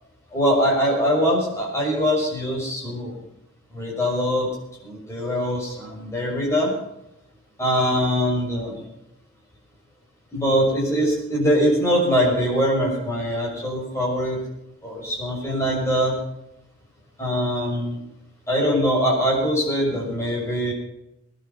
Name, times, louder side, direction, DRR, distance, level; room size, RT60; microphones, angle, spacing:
voice 1, 0.3-3.1 3.7-4.5 4.8-6.7 7.6-8.8 10.3-14.4 14.8-16.1 17.2-18.0 18.5-20.7, equal, 15° left, -3 dB, 6.6 m, -22 dB
20.5 x 11.5 x 5.9 m, 0.83 s
head